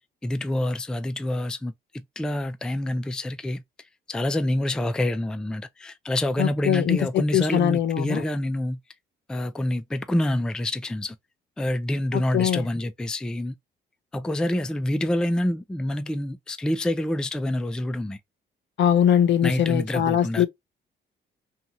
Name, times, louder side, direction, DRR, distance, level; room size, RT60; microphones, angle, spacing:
voice 1, 0.2-1.7 2.2-3.6 4.1-8.8 9.3-11.2 11.6-13.5 14.1-18.2 19.4-20.5, left 1 dB, 5° left, 0.3 m, -27 dB
voice 2, 6.4-8.2 12.1-12.7 18.8-20.5, left 9 dB, 65° left, 0.6 m, -22 dB
2.7 x 2.3 x 2.8 m
cardioid pair, 90°, 20 cm